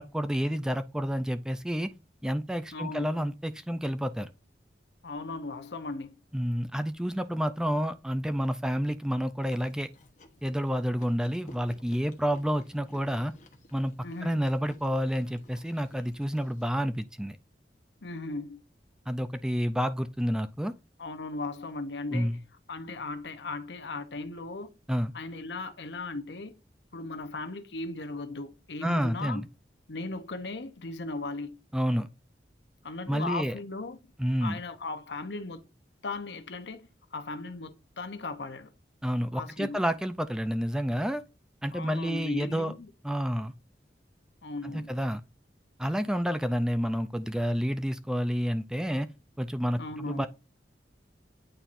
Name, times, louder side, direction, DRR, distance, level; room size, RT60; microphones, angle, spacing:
voice 1, 0.0-1.9 2.2-4.3 6.3-9.9 10.4-13.3 13.7-13.9 14.2-17.4 19.1-20.7 22.1-22.4 24.9-25.1 28.8-29.5 31.7-32.1 33.1-33.6 34.2-34.6 39.0-41.2 41.6-42.7 43.0-43.5 44.6-45.2 45.8-49.1 49.4-50.3, equal, 5° right, 0.4 m, -29 dB
voice 2, 2.7-3.3 5.0-6.2 14.0-14.4 18.0-18.6 21.0-22.3 22.7-24.7 25.1-26.5 26.9-29.4 29.9-31.6 32.8-34.0 34.4-35.6 36.0-36.8 37.1-38.7 39.3-39.8 41.7-42.9 44.4-44.9 49.8-50.3, left 3 dB, 80° left, 0.8 m, -37 dB
Chewing mastication, 9.5-16.7, left 1 dB, 45° left, 1.0 m, -56 dB
9.0 x 4.2 x 2.6 m
head